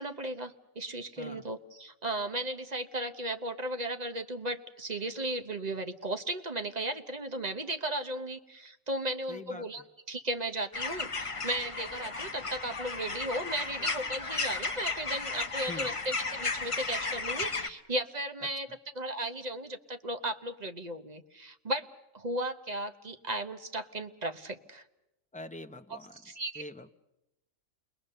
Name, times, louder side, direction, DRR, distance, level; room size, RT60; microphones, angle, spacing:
voice 1, 0.0-9.8 10.1-18.7 18.9-21.9 22.1-24.8 25.9-26.6, right 1 dB, 35° right, 8 dB, 1.1 m, -35 dB
voice 2, 9.3-9.9 15.7-15.9 25.3-26.2 26.6-26.9, left 2 dB, 5° left, 7 dB, 0.7 m, -44 dB
sound 1, 10.7-17.7, left 4 dB, 25° left, 1.0 m, -34 dB
29.0 x 21.0 x 6.7 m, 0.91 s
omnidirectional pair, 1.3 m